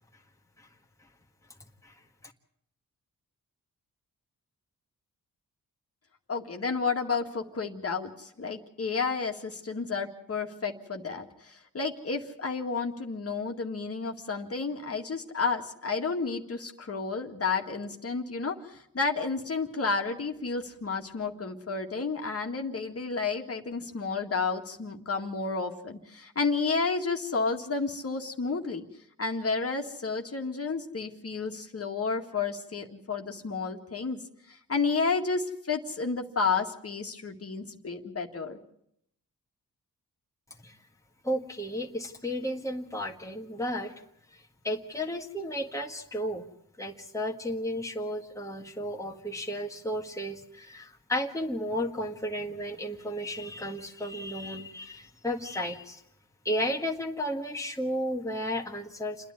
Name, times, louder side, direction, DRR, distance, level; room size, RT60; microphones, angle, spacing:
voice 1, 1.8-2.3 40.6-40.8 41.2-44.0 44.3-46.5 46.8-56.0 56.5-59.3, equal, 10° left, 1 dB, 1.8 m, -33 dB
voice 2, 6.3-28.9 29.2-38.6, left 4 dB, 45° left, 3 dB, 1.9 m, -31 dB
28.0 x 10.5 x 9.7 m, 0.75 s
cardioid pair, 80°, 34 cm